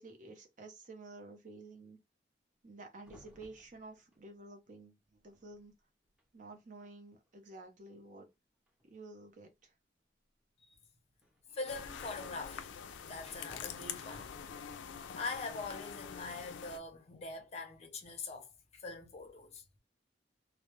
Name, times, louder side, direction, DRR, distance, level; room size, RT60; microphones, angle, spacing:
voice 1, 0.0-2.0 2.6-5.7 6.3-8.3 8.8-9.7, right 2 dB, 45° right, 0.6 m, -51 dB
sound 1, 3.0-4.2 5.1-5.2 5.3-5.7 6.0-6.2 6.8-6.9 7.3-7.6 8.7-9.2 11.2-12.2 13.1-14.8, right 1 dB, 5° right, 0.7 m, -61 dB
voice 2, 11.5-14.3 15.1-18.5 18.8-19.6, left 3 dB, 35° left, 0.6 m, -43 dB
sound 2, 11.7-16.8, left 7 dB, 85° left, 0.3 m, -45 dB
2.2 x 2.0 x 3.0 m
head